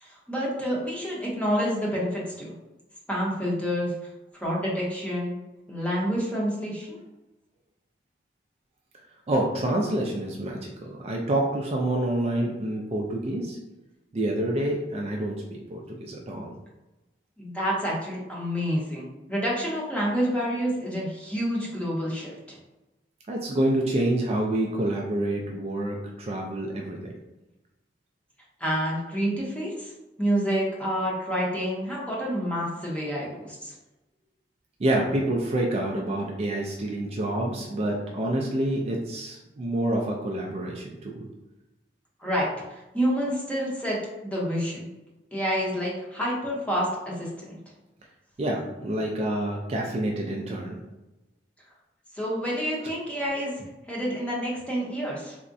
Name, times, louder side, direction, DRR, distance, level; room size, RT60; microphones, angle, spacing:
voice 1, 0.0-2.5 3.1-3.9 4.4-5.4 5.7-7.0 17.4-22.6 28.6-29.9 30.2-33.7 42.2-44.9 45.3-47.3 52.1-53.5 53.9-55.4, equal, 5° left, -4 dB, 0.7 m, -28 dB
voice 2, 9.3-13.6 14.1-16.5 23.3-27.1 34.8-41.3 48.4-50.8, right 1 dB, 35° right, -1 dB, 0.3 m, -27 dB
3.4 x 2.1 x 2.5 m, 1.0 s
head